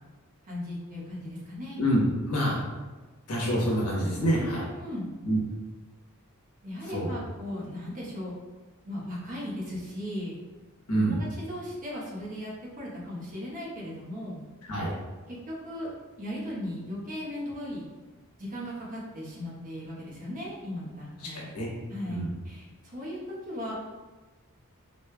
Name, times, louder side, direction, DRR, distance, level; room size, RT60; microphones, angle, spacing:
voice 1, 0.4-1.8 4.4-5.1 6.6-8.3 8.8-10.3 10.9-14.4 15.3-15.9 16.2-17.8 18.4-21.4 21.9-23.7, left 1 dB, 40° right, -5 dB, 1.0 m, -37 dB
voice 2, 2.3-2.6 3.3-4.6 5.2-5.4 6.8-7.1 10.9-11.2 14.7-14.9 21.3-21.7 22.1-22.3, right 1 dB, 85° left, -3 dB, 1.0 m, -26 dB
4.1 x 3.2 x 2.2 m, 1.3 s
head